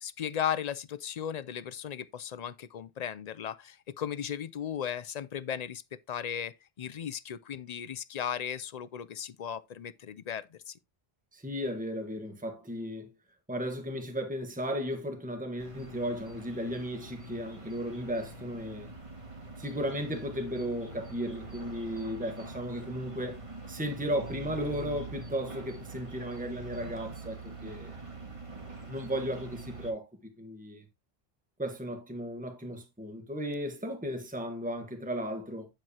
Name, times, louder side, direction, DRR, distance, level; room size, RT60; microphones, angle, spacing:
voice 1, 0.0-10.8, left 9 dB, 50° left, 0.5 m, -36 dB
voice 2, 11.3-13.1 13.5-18.9 19.6-23.4 23.7-28.0 28.9-30.1 30.4-30.8 31.6-35.7, equal, 10° right, 1.4 m, -35 dB
sound 1, 15.6-29.9, right 3 dB, 30° right, 1.8 m, -44 dB
9.0 x 7.6 x 2.8 m
omnidirectional pair, 1.0 m